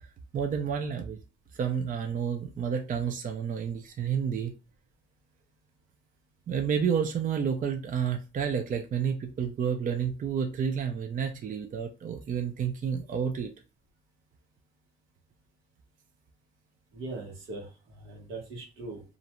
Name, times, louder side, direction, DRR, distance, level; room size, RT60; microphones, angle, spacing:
voice 1, 0.3-1.2 1.5-4.5 6.5-13.5, right 7 dB, 45° right, 0.5 m, -30 dB
voice 2, 16.9-19.0, right 2 dB, 90° right, 1.1 m, -40 dB
2.5 x 2.1 x 2.9 m
cardioid pair, 90°, 20 cm